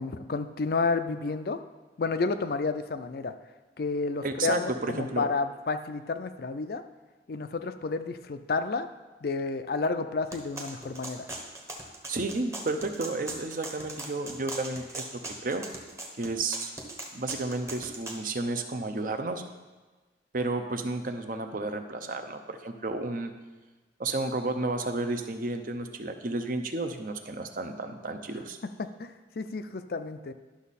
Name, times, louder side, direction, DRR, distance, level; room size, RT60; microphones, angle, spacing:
voice 1, 0.0-1.6 2.0-3.3 3.8-6.8 7.3-8.9 9.2-11.3 28.8-30.3, left 4 dB, 55° left, 9 dB, 0.4 m, -31 dB
voice 2, 4.2-5.3 12.1-15.6 16.2-16.7 17.1-19.4 20.3-23.3 24.0-28.6, right 2 dB, 45° right, 6 dB, 0.6 m, -32 dB
sound 1, 10.3-18.2, right 2 dB, 15° right, 0.9 m, -39 dB
11.5 x 6.1 x 4.1 m, 1.2 s
head